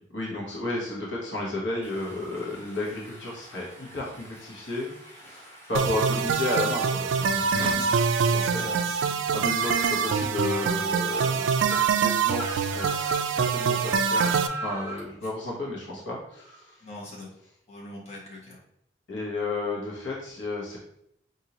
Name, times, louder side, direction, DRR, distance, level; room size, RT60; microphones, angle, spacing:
voice 1, 0.1-7.9 8.3-9.0 9.3-16.8 19.1-20.8, left 2 dB, 70° left, -4 dB, 1.1 m, -33 dB
Stream, 1.8-7.7, equal, 15° left, 1.1 m, -50 dB
sound 1, 5.7-14.5, right 6 dB, 75° right, 0.3 m, -25 dB
voice 2, 8.4-9.3 15.1-15.2 16.8-17.3 17.7-18.6, left 1 dB, 35° left, -5 dB, 1.2 m, -42 dB
Speech, 9.6-15.1, equal, 15° right, 1.1 m, -37 dB
5.0 x 2.7 x 2.9 m, 0.75 s
head